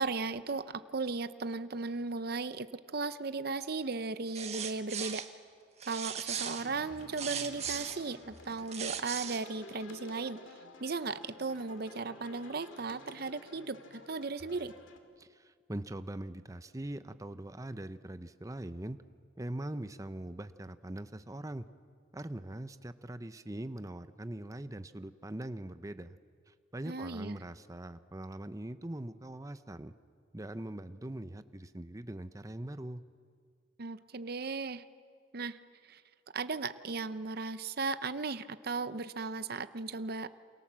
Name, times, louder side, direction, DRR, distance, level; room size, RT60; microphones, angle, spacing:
voice 1, 0.0-5.2 5.9-10.4 10.8-14.7 26.9-27.4 33.8-34.8 35.3-35.6 35.9-36.0 36.3-40.3, right 3 dB, 55° right, 13 dB, 0.7 m, -36 dB
sound 1, 4.3-5.3 5.8-8.0 8.5-9.4, right 8 dB, 35° right, 1.5 m, -38 dB
sound 2, 6.4-15.0, left 2 dB, 85° left, 2.4 m, -52 dB
voice 2, 15.2-19.0 19.4-21.7 22.1-26.2 26.5-29.9 30.3-33.0, right 1 dB, 15° right, 11 dB, 0.7 m, -42 dB
28.5 x 25.5 x 7.5 m, 2.2 s
head